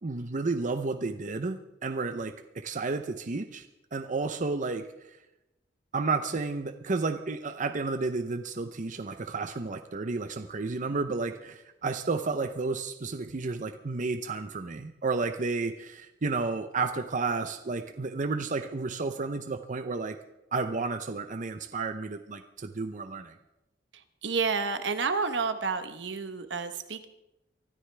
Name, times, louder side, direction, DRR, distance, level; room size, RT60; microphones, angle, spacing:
voice 1, 0.0-3.7 3.9-4.9 5.9-20.2 20.5-23.3, right 3 dB, 45° right, 7 dB, 0.7 m, -32 dB
voice 2, 24.2-27.0, right 4 dB, 75° right, 9 dB, 1.0 m, -30 dB
24.0 x 13.0 x 3.4 m, 0.92 s
head